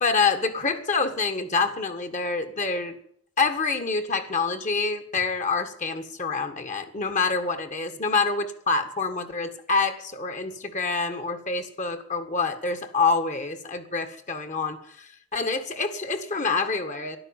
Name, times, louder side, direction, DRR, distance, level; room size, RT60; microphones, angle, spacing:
voice 1, 0.0-3.0 3.4-17.2, left 4 dB, 40° left, 9 dB, 1.7 m, -26 dB
12.5 x 12.0 x 9.0 m, 0.64 s
head